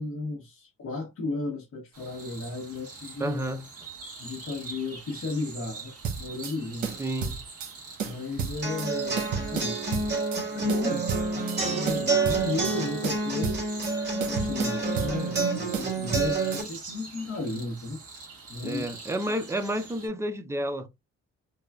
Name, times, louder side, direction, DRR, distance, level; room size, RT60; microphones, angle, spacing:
voice 1, 0.0-3.4 4.2-5.9 6.2-7.0 8.0-9.8 10.5-11.0 11.6-13.7 14.3-18.0 18.5-18.8, left 3 dB, 50° left, 0.9 m, -34 dB
sound 1, 1.9-20.1, right 4 dB, 50° right, 1.5 m, -44 dB
voice 2, 3.2-3.6 7.0-7.4 18.6-20.9, right 1 dB, 10° right, 0.5 m, -30 dB
sound 2, 6.0-6.6 6.8-7.7 8.0-8.9 9.2-10.4 10.7-11.6 11.9-12.8 13.0-13.9 14.2-15.5 15.7-16.6, right 6 dB, 70° right, 0.9 m, -32 dB
sound 3, 8.6-16.6, right 3 dB, 35° right, 2.0 m, -28 dB
3.2 x 2.3 x 2.3 m
cardioid pair, 90°, 30 cm